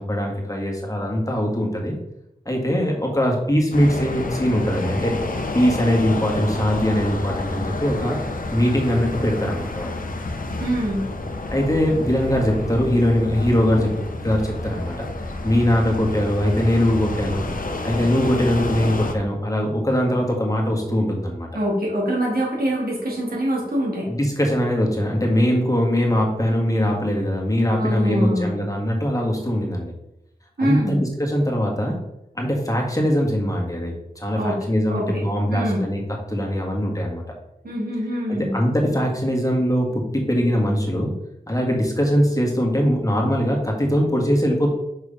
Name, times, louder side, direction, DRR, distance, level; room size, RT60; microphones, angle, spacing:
voice 1, 0.0-1.9 2.4-5.2 5.5-8.2 8.5-9.9 11.5-13.9 14.2-14.9 15.4-17.4 17.8-21.5 24.1-29.9 30.6-32.0 32.3-36.0 36.3-37.2 38.3-41.1 41.5-44.7, equal, 20° left, -1 dB, 1.8 m, -21 dB
sound 1, 3.7-19.1, left 2 dB, 65° left, 0.9 m, -29 dB
voice 2, 10.6-11.0 21.5-24.1 27.7-28.6 30.6-31.0 34.3-34.6 34.9-35.2 35.5-35.8 37.6-38.6, equal, 75° right, -4 dB, 2.6 m, -24 dB
5.6 x 4.8 x 5.1 m, 0.88 s
wide cardioid pair, 65°, 16 cm